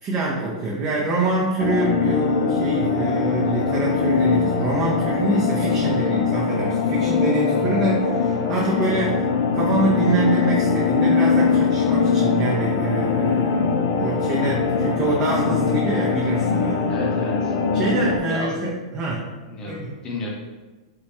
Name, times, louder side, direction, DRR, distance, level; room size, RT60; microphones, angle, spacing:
voice 1, 0.0-9.2 9.5-13.7 14.0-16.9 17.7-19.3 19.7-19.9, right 2 dB, 30° right, -5 dB, 0.5 m, -25 dB
sound 1, 1.6-18.2, left 5 dB, 55° left, 0.3 m, -22 dB
voice 2, 5.9-6.2 16.9-17.5 18.3-18.6 19.5-20.3, left 2 dB, 25° left, -3 dB, 0.8 m, -32 dB
3.0 x 2.2 x 2.8 m, 1.2 s
hypercardioid pair, 105°, 3 cm